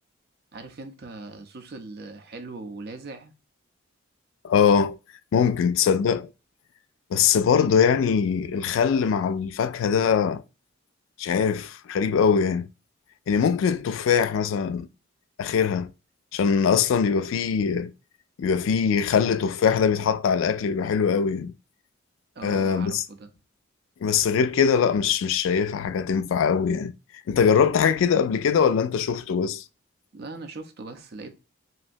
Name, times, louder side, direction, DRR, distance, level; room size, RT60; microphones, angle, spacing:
voice 1, 0.5-3.3 22.4-23.3 30.1-31.3, right 3 dB, 55° right, 0.5 m, -40 dB
voice 2, 4.4-5.0 5.3-6.3 7.1-10.4 11.2-12.7 13.3-14.9 15.4-15.9 16.3-17.9 18.4-21.5 22.4-23.0 24.0-26.9 27.3-29.6, left 6 dB, 85° left, 0.3 m, -22 dB
3.1 x 2.7 x 2.5 m
head